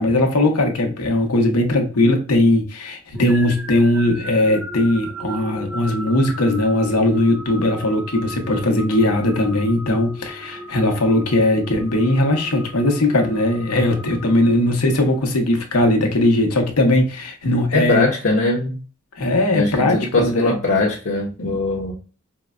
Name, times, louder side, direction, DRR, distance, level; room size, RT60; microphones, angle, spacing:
voice 1, 0.0-18.0 19.2-20.5 21.4-21.6, left 1 dB, 90° left, 0.9 m, -19 dB
sound 1, 3.1-15.1, equal, 5° right, 0.3 m, -35 dB
voice 2, 17.7-18.8 19.5-21.9, left 2 dB, 55° left, 0.7 m, -20 dB
4.5 x 2.1 x 2.3 m
head